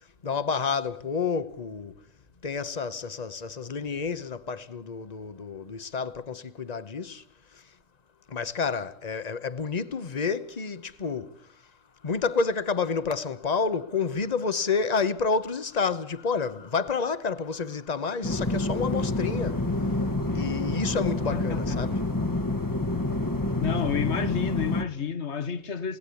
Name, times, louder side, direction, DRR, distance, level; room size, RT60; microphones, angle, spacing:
voice 1, 0.2-1.9 2.4-7.2 7.5-7.6 8.3-11.4 12.0-19.9 20.3-22.0, left 5 dB, 30° left, 1.1 m, -29 dB
sound 1, 18.2-24.8, left 2 dB, 15° left, 1.4 m, -28 dB
voice 2, 21.3-21.8 23.6-26.0, left 6 dB, 55° left, 1.7 m, -30 dB
29.5 x 18.5 x 8.5 m
omnidirectional pair, 1.4 m